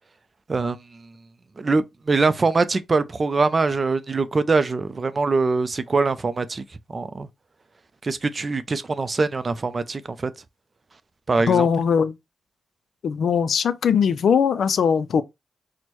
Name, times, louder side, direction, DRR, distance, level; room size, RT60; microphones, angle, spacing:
voice 1, 1.6-6.6 6.9-7.3 8.0-10.3 11.3-11.7, right 3 dB, 40° right, 0.4 m, -23 dB
voice 2, 11.5-12.2 13.0-15.2, left 7 dB, 75° left, 0.4 m, -20 dB
4.4 x 2.1 x 2.9 m
cardioid pair, 65°, 0 cm